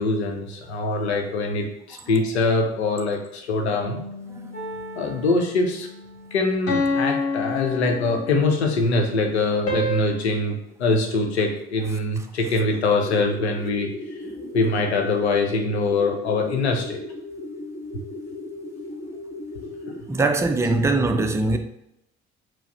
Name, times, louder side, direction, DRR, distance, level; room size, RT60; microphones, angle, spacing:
voice 1, 0.0-4.0 5.0-5.9 6.3-13.9 14.5-17.0 19.9-20.0, left 3 dB, 80° left, 0.7 m, -23 dB
Bass guitar, 3.8-10.1, left 1 dB, 90° right, 0.5 m, -44 dB
sound 1, 4.5-5.5 6.7-8.6 9.7-10.1, left 2 dB, 45° left, 1.4 m, -27 dB
sound 2, 13.0-20.0, left 2 dB, 25° left, 0.9 m, -36 dB
voice 2, 20.1-21.6, right 2 dB, 10° right, 0.4 m, -22 dB
4.6 x 2.0 x 4.6 m
figure-of-eight pair, 50°, 32 cm